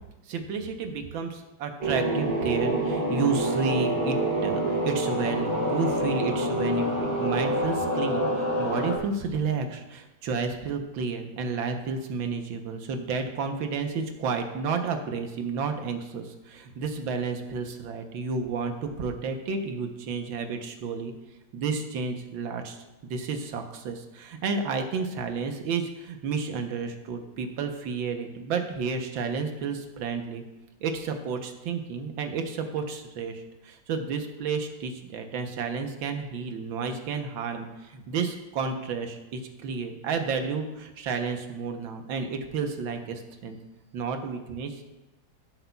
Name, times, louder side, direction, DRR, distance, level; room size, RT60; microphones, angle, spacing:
voice 1, 0.3-4.2 4.4-21.1 21.5-30.4 30.8-43.6 43.9-44.8, right 5 dB, 70° right, 5 dB, 1.7 m, -31 dB
sound 1, 1.8-9.0, right 1 dB, 25° right, 3.9 m, -27 dB
16.0 x 7.9 x 2.3 m, 1.0 s
omnidirectional pair, 2.3 m